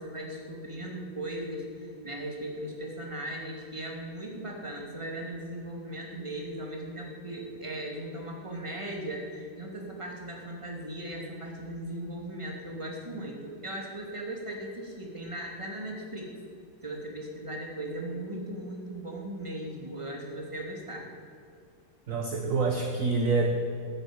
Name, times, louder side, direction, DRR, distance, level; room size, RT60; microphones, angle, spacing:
voice 1, 0.0-16.3 16.8-21.0, right 1 dB, 15° right, -1 dB, 2.7 m, -38 dB
voice 2, 22.1-23.5, right 3 dB, 50° right, 3 dB, 1.4 m, -26 dB
13.5 x 11.0 x 9.0 m, 2.5 s
omnidirectional pair, 2.0 m